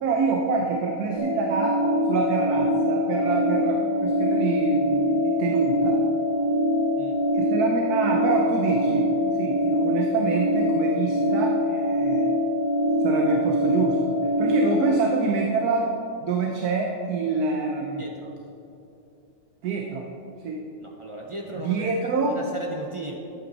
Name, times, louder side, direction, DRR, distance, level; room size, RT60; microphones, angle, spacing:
voice 1, 0.0-1.8 2.1-6.0 7.3-9.1 9.4-12.2 13.0-18.1 19.6-20.1 20.4-20.6 21.5-22.3, right 4 dB, 65° right, 1 dB, 1.3 m, -26 dB
sound 1, 1.1-14.9, left 1 dB, 20° left, 1.3 m, -24 dB
voice 2, 18.0-18.3 20.8-21.9 22.3-23.2, right 1 dB, 40° right, -1 dB, 0.4 m, -36 dB
12.0 x 8.5 x 4.0 m, 2.7 s
omnidirectional pair, 1.8 m